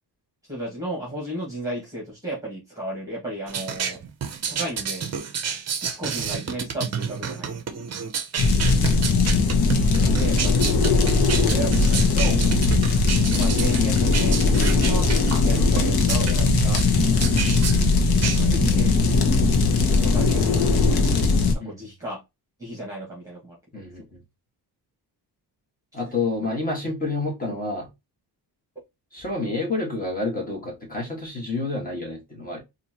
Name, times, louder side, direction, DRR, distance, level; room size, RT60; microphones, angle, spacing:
voice 1, 0.5-4.0 4.5-5.1 5.8-7.9 10.0-10.7 11.3-12.4 13.3-15.1 15.4-16.8 18.3-19.3 20.0-21.1 21.6-22.2 22.6-23.5, right 1 dB, 10° right, 1.6 m, -34 dB
sound 1, 3.5-18.8, right 7 dB, 40° right, 0.6 m, -30 dB
sound 2, 8.4-21.6, left 3 dB, 60° left, 1.0 m, -19 dB
voice 2, 8.8-9.5 17.4-17.6 21.6-21.9 23.7-24.2 25.9-27.9 29.1-32.6, left 3 dB, 20° left, 1.6 m, -29 dB
4.2 x 2.6 x 2.9 m
wide cardioid pair, 155°, 41 cm